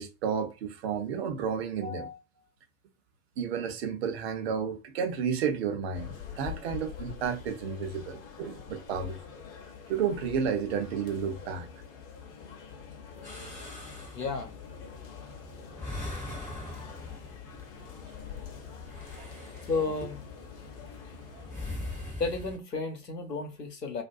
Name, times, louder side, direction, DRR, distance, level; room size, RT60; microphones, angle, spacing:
voice 1, 0.0-2.1 3.4-9.2 9.9-11.7 19.1-19.7 21.3-21.4, right 7 dB, 40° right, 0.6 m, -32 dB
voice 2, 1.8-2.2 14.1-14.5 19.7-20.2 22.2-24.0, left 4 dB, 85° left, 0.9 m, -32 dB
sound 1, 5.9-22.1, left 7 dB, 40° left, 0.7 m, -45 dB
sound 2, 13.2-22.6, left 1 dB, 5° left, 0.6 m, -43 dB
2.5 x 2.2 x 2.4 m
figure-of-eight pair, 105°, 48 cm